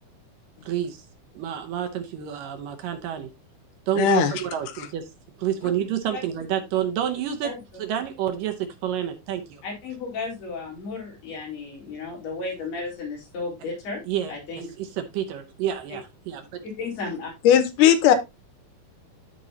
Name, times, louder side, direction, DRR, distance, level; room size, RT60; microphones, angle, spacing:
voice 1, 0.7-1.1 1.4-3.3 3.9-5.1 5.4-7.5 7.8-9.6 14.1-14.3 14.8-16.6, right 10 dB, 70° right, 5 dB, 2.3 m, -28 dB
voice 2, 4.0-4.3 17.4-18.1, left 10 dB, 70° left, 10 dB, 2.1 m, -17 dB
voice 3, 7.4-7.8 9.6-14.0 14.3-14.7 15.9-16.0 16.6-17.3, left 3 dB, 90° left, -3 dB, 5.9 m, -34 dB
13.5 x 4.6 x 2.8 m, 0.23 s
omnidirectional pair, 4.5 m